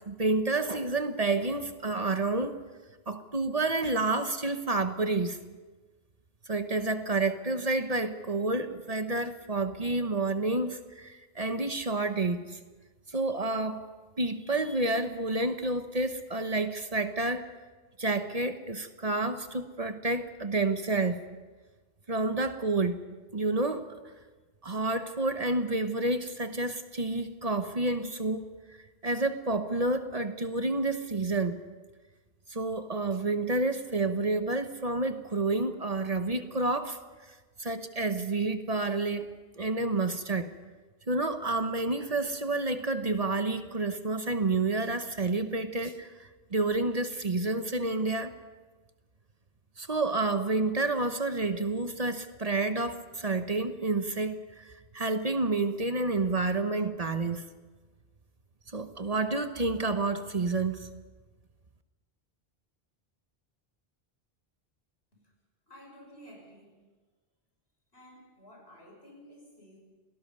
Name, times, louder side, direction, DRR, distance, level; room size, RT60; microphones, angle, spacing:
voice 1, 0.1-2.6 3.1-5.4 6.5-12.6 13.1-13.8 14.2-17.5 18.0-21.2 22.1-23.0 23.3-24.0 24.6-28.4 29.0-31.6 32.5-37.0 37.3-40.5 41.1-48.3 49.8-57.4 58.7-60.9, right 2 dB, 40° right, 9 dB, 1.1 m, -29 dB
voice 2, 65.7-66.9 67.9-69.8, equal, 90° left, 0 dB, 6.5 m, -53 dB
28.0 x 18.5 x 5.5 m, 1.3 s
omnidirectional pair, 1.0 m